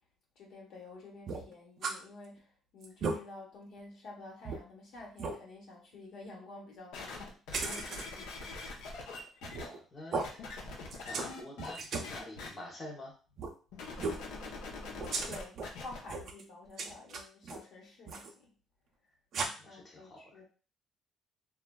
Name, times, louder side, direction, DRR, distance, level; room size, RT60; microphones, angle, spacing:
voice 1, 0.4-7.4 7.6-8.5 13.9-18.5 19.4-20.4, left 2 dB, 70° left, -2 dB, 1.0 m, -50 dB
sound 1, 1.3-2.0 2.4-2.5 2.8-3.2 3.8-3.9 4.4-4.6 5.2-5.4 7.5-8.0 9.4-9.8 10.1-10.3 10.9-11.3 11.6-12.1 13.4-13.5 14.0-14.3 15.0-15.7 16.0-16.4 16.8-17.6 18.1-18.3 19.3-19.5, right 4 dB, 55° right, 0.5 m, -36 dB
sound 2, 6.9-9.7 10.2-11.8 12.0-12.5 13.7-16.0 16.7-16.8, left 3 dB, 90° left, 0.6 m, -43 dB
voice 2, 9.5-10.5 10.8-13.2 19.4-20.4, left 1 dB, 25° left, -2 dB, 0.8 m, -48 dB
3.0 x 2.3 x 2.2 m, 0.37 s
cardioid pair, 115°, 0 cm